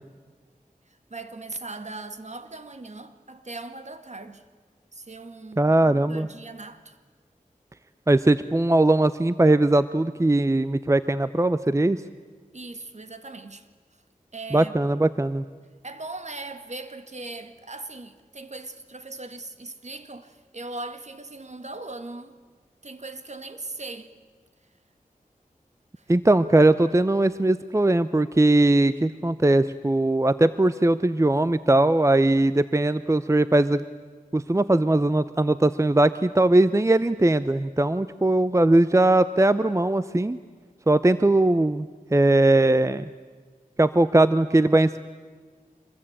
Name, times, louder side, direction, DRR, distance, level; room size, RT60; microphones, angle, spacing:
voice 1, 0.9-4.5 4.9-7.0 12.5-13.7 14.3-14.9 15.8-22.4 22.8-24.1 26.0-26.1, right 2 dB, 50° right, 1.8 m, -39 dB
voice 2, 5.6-6.3 8.1-12.0 14.5-15.4 26.1-33.8 34.3-40.4 40.9-43.1 43.8-45.0, right 2 dB, 20° right, 0.7 m, -20 dB
25.5 x 21.5 x 8.8 m
wide cardioid pair, 50°, 15 cm